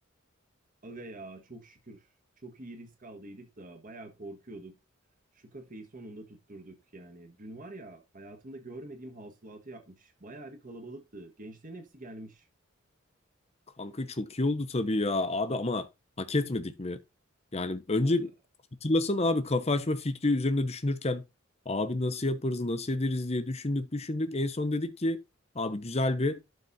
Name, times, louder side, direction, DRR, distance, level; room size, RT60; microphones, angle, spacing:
voice 1, 0.8-2.1 2.4-4.7 5.3-12.5 18.0-18.3, right 2 dB, 40° right, 1.4 m, -46 dB
voice 2, 13.8-15.9 16.2-17.0 17.5-18.3 18.8-21.2 21.7-25.2 25.5-26.4, left 2 dB, 30° left, 0.9 m, -29 dB
12.0 x 4.0 x 4.1 m
head